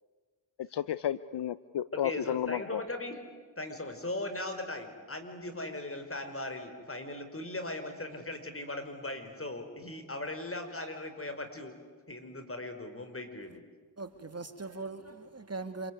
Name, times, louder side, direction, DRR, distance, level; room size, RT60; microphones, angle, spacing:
voice 1, 0.6-2.8, left 10 dB, 65° left, 16 dB, 0.8 m, -32 dB
voice 2, 1.9-3.2 3.6-11.7 12.1-13.6, left 2 dB, 30° left, 7 dB, 5.3 m, -39 dB
voice 3, 14.0-15.9, right 3 dB, 35° right, 9 dB, 2.4 m, -40 dB
27.5 x 22.5 x 9.6 m, 1.5 s
supercardioid pair, 45°, 45 cm